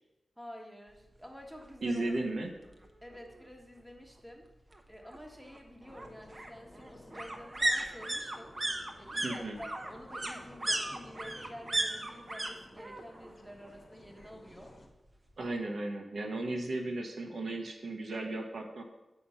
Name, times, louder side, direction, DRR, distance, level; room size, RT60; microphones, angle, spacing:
voice 1, 0.4-2.1 3.0-4.5 4.9-8.5 9.0-14.8, equal, ahead, 1 dB, 1.3 m, -49 dB
sound 1, 1.6-1.7 2.1-2.2 2.4-3.4 4.7-12.5 12.8-13.3 13.6-14.7 15.0-15.1, right 1 dB, 30° right, 0.9 m, -36 dB
voice 2, 1.8-2.5 9.2-9.6 15.4-18.8, right 2 dB, 70° right, 2 dB, 1.2 m, -35 dB
sound 2, 5.9-14.9, left 1 dB, 40° left, 1.2 m, -56 dB
7.6 x 6.0 x 5.7 m, 1.0 s
wide cardioid pair, 120°, 0 cm